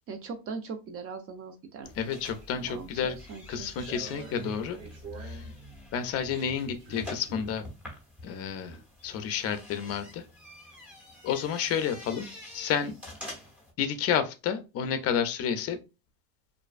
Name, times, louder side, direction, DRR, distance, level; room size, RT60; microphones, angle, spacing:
voice 1, 0.1-1.9 2.5-3.7 8.7-8.8, right 4 dB, 35° right, 7 dB, 0.5 m, -40 dB
sound 1, 1.8-13.7, left 1 dB, 5° right, 0.7 m, -47 dB
voice 2, 2.0-3.2 3.5-4.8 5.2-5.4 5.9-7.7 8.2-8.8 9.0-10.3 11.2-12.3 12.5-12.9 13.8-15.8, left 8 dB, 40° left, 9 dB, 0.5 m, -30 dB
sound 2, 2.0-2.7 3.2-5.6 6.2-7.6, right 3 dB, 60° right, 1.5 m, -45 dB
2.5 x 2.2 x 2.4 m, 0.28 s
supercardioid pair, 115°, 40 cm